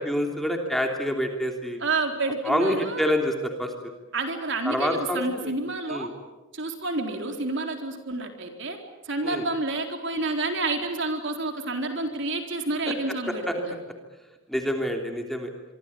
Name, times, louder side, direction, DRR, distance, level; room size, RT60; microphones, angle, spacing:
voice 1, 0.0-1.8 2.4-3.7 4.6-5.5 5.9-6.1 9.2-9.4 13.3-13.5 14.5-15.5, equal, ahead, 3 dB, 3.1 m, -27 dB
voice 2, 1.8-3.1 4.1-6.1 6.5-8.8 9.1-13.7, right 2 dB, 55° right, 4 dB, 4.1 m, -29 dB
26.5 x 24.5 x 8.7 m, 1.1 s
head